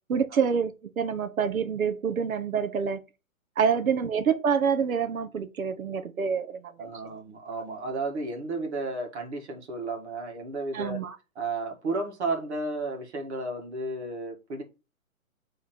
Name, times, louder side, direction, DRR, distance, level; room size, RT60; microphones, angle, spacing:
voice 1, 0.1-3.0 3.6-6.9 10.7-11.1, right 6 dB, 75° right, 1.3 m, -27 dB
voice 2, 6.8-11.0 11.4-14.6, right 2 dB, 50° right, 2.1 m, -33 dB
7.5 x 3.7 x 4.4 m
hypercardioid pair, 150°, 42 cm